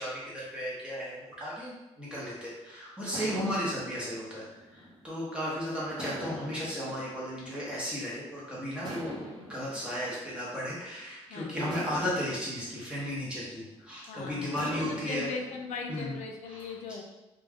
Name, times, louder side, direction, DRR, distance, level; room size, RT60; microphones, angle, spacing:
voice 1, 0.0-15.3 15.9-16.2 16.5-16.7, equal, 10° right, -7 dB, 0.8 m, -35 dB
sound 1, 2.2-2.5 3.1-5.4 6.0-8.2 8.8-11.0 11.7-14.0 14.6-16.1, equal, 40° right, 0.8 m, -44 dB
voice 2, 11.3-11.8 14.0-17.0, left 4 dB, 75° left, 2 dB, 0.4 m, -39 dB
2.4 x 2.3 x 3.4 m, 1.0 s
cardioid pair, 135°, 12 cm